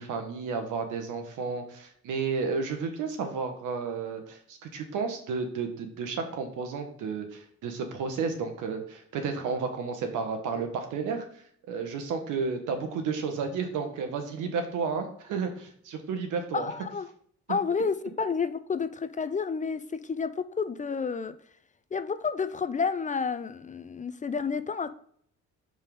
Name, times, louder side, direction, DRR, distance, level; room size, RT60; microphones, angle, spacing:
voice 1, 0.0-16.7, right 5 dB, 85° right, 5 dB, 1.2 m, -32 dB
voice 2, 16.5-17.1 17.5-21.3 21.9-24.9, left 5 dB, 25° left, 12 dB, 0.4 m, -30 dB
5.3 x 3.7 x 5.2 m, 0.63 s
cardioid pair, 90°, 30 cm